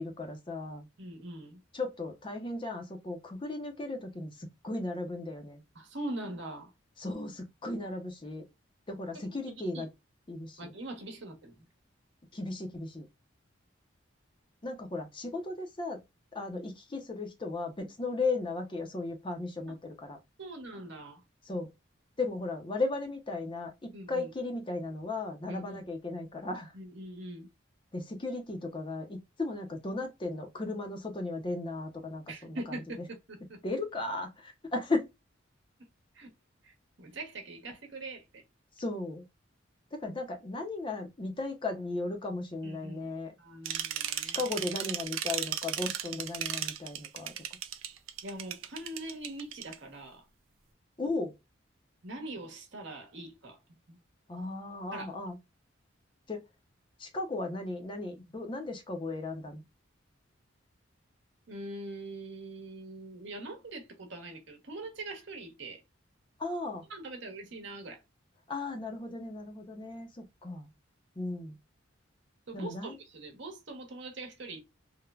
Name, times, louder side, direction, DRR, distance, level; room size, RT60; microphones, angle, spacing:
voice 1, 0.0-0.9 1.7-4.3 4.6-5.6 7.0-8.4 8.9-9.9 10.3-10.7 12.3-13.1 14.6-16.0 16.3-20.2 21.5-21.7 22.2-26.7 27.9-32.6 33.6-35.1 38.8-39.2 39.9-43.3 43.7-43.8 44.2-47.3 51.0-51.3 54.3-55.4 56.3-56.4 57.0-59.6 66.4-66.8 68.5-70.7 71.2-71.5 72.5-73.0, left 2 dB, 25° left, 0.5 m, -36 dB
voice 2, 1.0-1.6 5.7-6.7 9.3-9.9 10.6-11.7 18.1-18.2 20.4-21.2 23.9-24.3 25.5-25.9 26.7-27.5 32.3-33.6 36.1-36.3 36.6-38.4 42.6-43.1 43.4-44.4 48.2-50.3 52.0-53.6 53.9-54.0 54.9-55.2 61.5-65.8 66.9-68.0 72.5-74.6, right 2 dB, 60° right, 0.9 m, -42 dB
sound 1, 43.7-49.7, right 11 dB, 80° right, 0.4 m, -35 dB
3.1 x 2.1 x 2.2 m
head